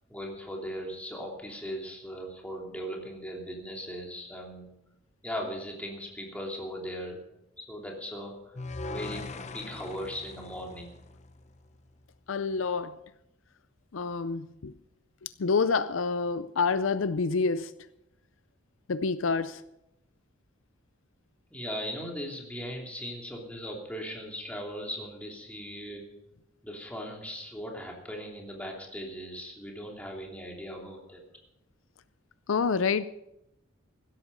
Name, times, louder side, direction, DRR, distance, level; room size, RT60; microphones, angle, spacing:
voice 1, 0.1-4.7 5.2-7.2 7.6-8.5 8.9-9.3 9.5-10.9 21.5-26.0 26.6-31.2, equal, 5° left, 3.0 m, -38 dB
sound 1, 8.6-11.8, left 2 dB, 35° left, 0.8 m, -41 dB
voice 2, 12.3-13.0 13.9-14.7 15.2-17.7 18.9-19.6 32.5-33.0, left 4 dB, 70° left, 0.5 m, -27 dB
16.5 x 13.0 x 5.4 m
head